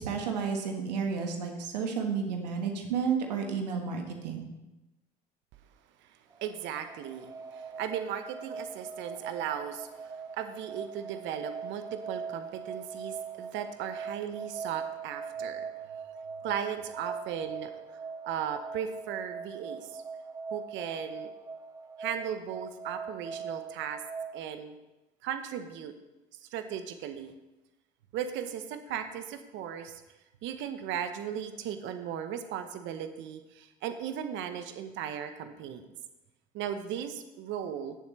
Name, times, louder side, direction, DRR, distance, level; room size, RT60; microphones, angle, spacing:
voice 1, 0.0-4.4, right 6 dB, 85° right, 3 dB, 1.5 m, -31 dB
voice 2, 6.0-15.7 16.4-17.7 18.2-20.0 20.5-21.3 22.0-24.0 24.3-24.7 25.2-25.9 26.5-27.3 28.1-30.0 30.4-35.9 36.5-38.0, right 9 dB, 65° right, 9 dB, 1.0 m, -37 dB
sound 1, 6.3-24.5, right 5 dB, 15° right, 0.5 m, -41 dB
18.0 x 7.3 x 3.2 m, 1.0 s
hypercardioid pair, 60°, 21 cm